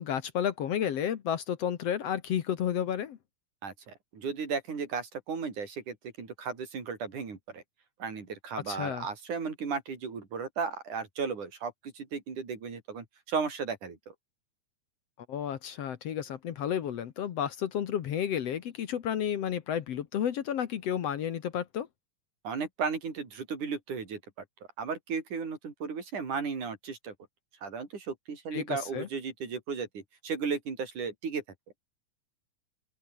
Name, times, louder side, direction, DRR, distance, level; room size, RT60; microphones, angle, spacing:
voice 1, 0.0-3.2 8.7-9.1 15.3-21.9 28.5-29.1, left 9 dB, 60° left, 2.1 m, -31 dB
voice 2, 3.6-7.6 8.0-14.1 22.4-24.2 24.8-27.1 27.6-31.4, right 5 dB, 75° right, 5.8 m, -35 dB
open air
omnidirectional pair, 3.5 m